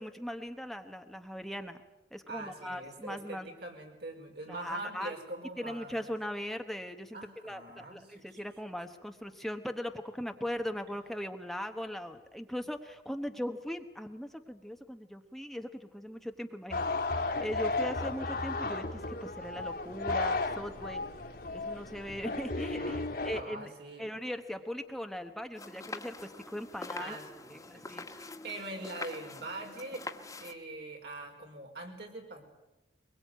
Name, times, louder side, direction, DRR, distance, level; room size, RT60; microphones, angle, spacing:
voice 1, 0.0-1.8 2.1-3.5 4.5-5.1 5.6-7.2 7.4-21.0 21.5-23.7 24.0-27.2 27.5-28.0, equal, ahead, 6 dB, 1.0 m, -39 dB
voice 2, 2.3-6.1 7.1-8.4 22.8-23.0 23.3-24.0 26.9-30.0 30.4-32.4, right 2 dB, 65° right, 2 dB, 5.1 m, -43 dB
sound 1, 16.7-23.4, left 3 dB, 60° left, 2.2 m, -34 dB
sound 2, 25.5-30.5, left 3 dB, 20° left, 1.6 m, -44 dB
23.0 x 22.0 x 9.2 m, 1.0 s
head